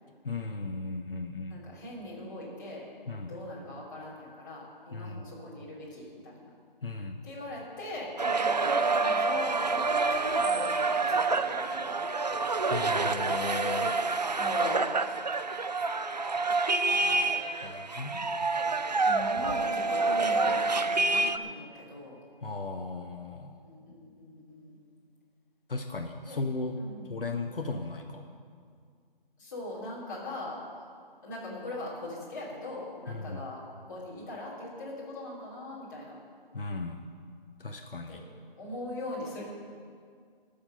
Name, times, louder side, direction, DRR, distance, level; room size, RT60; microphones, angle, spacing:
voice 1, 0.2-1.6 3.1-3.3 4.9-5.2 6.8-7.2 12.7-13.9 17.6-18.4 22.4-23.5 25.7-26.8 27.1-28.3 33.1-33.4 36.5-37.0 37.6-38.2, left 3 dB, 70° left, 3 dB, 1.2 m, -36 dB
voice 2, 1.5-2.8 3.3-6.5 7.2-11.9 14.4-14.8 16.8-17.4 19.0-22.2 23.6-24.8 26.3-26.4 26.8-27.1 29.4-30.9 31.2-33.6 33.9-36.2 38.1-38.2 38.6-39.4, left 1 dB, 20° left, -7 dB, 2.8 m, -40 dB
sound 1, 8.2-21.4, right 3 dB, 45° right, 0.5 m, -27 dB
21.0 x 7.2 x 5.6 m, 2.1 s
hypercardioid pair, 175°, 29 cm